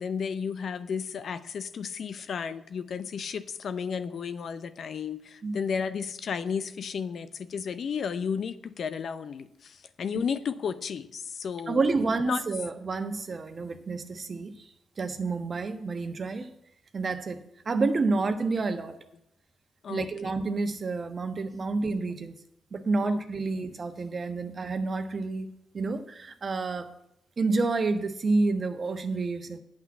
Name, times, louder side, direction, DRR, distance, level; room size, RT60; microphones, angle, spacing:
voice 1, 0.0-11.9 12.3-12.4 19.8-20.1 23.0-23.2, left 6 dB, 60° left, 12 dB, 0.7 m, -33 dB
voice 2, 11.7-14.6 15.0-16.5 16.9-19.0 19.9-22.3 22.7-26.9 27.4-29.6, right 3 dB, 45° right, 8 dB, 1.2 m, -29 dB
9.0 x 5.9 x 8.3 m, 0.80 s
hypercardioid pair, 40°, 0 cm